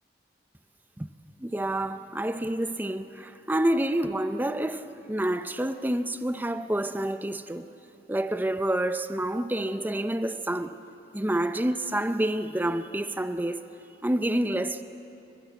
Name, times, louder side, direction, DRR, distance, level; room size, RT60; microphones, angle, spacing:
voice 1, 1.4-7.7 8.1-10.8 11.1-13.6 14.0-14.8, right 1 dB, 10° right, 0.6 m, -28 dB
27.5 x 23.0 x 8.1 m
head